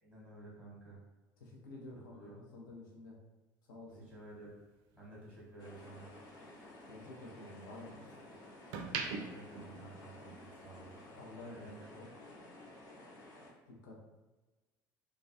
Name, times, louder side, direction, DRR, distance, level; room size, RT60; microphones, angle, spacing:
voice 1, 0.0-1.0 2.1-2.3 3.9-4.5 4.9-6.0 9.1-11.0 11.6-11.9, right 2 dB, 10° left, -7 dB, 1.0 m, -52 dB
voice 2, 1.4-3.1 3.7-4.1 6.9-8.0 11.2-12.1 13.7-14.0, left 2 dB, 70° left, -1 dB, 0.6 m, -50 dB
sound 1, 3.9-6.2 6.6-8.0 8.5-10.6 10.9-11.2, right 5 dB, 50° right, 0.4 m, -44 dB
sound 2, 5.6-13.5, left 2 dB, 35° left, 0.8 m, -54 dB
2.3 x 2.2 x 2.5 m, 1.2 s
figure-of-eight pair, 65°, 11 cm